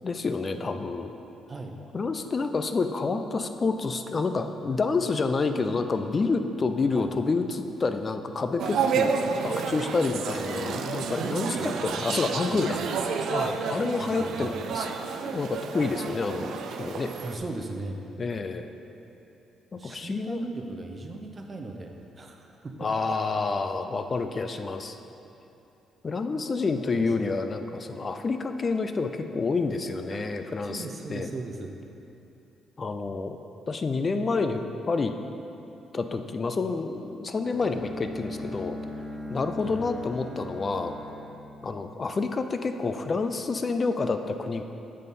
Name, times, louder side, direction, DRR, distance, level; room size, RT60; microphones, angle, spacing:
voice 1, 0.0-1.1 1.9-9.2 9.4-12.8 13.3-14.9 15.3-17.1 18.2-18.7 19.8-20.4 22.8-25.0 26.0-30.8 31.1-31.3 32.8-33.4 33.7-35.1 35.9-38.8 39.3-40.9 41.6-44.6, left 4 dB, 35° left, 8 dB, 0.4 m, -28 dB
sound 1, 8.6-17.4, right 5 dB, 75° right, 0.4 m, -30 dB
voice 2, 11.1-11.8 12.5-12.8 14.0-14.6 17.2-18.0 19.7-22.7 26.8-27.3 30.1-31.7 39.6-39.8, right 2 dB, 35° right, 3 dB, 0.7 m, -38 dB
Bowed string instrument, 37.4-42.4, left 1 dB, 55° right, 1.3 m, -39 dB
7.6 x 4.0 x 5.3 m, 2.8 s
cardioid pair, 90°, 0 cm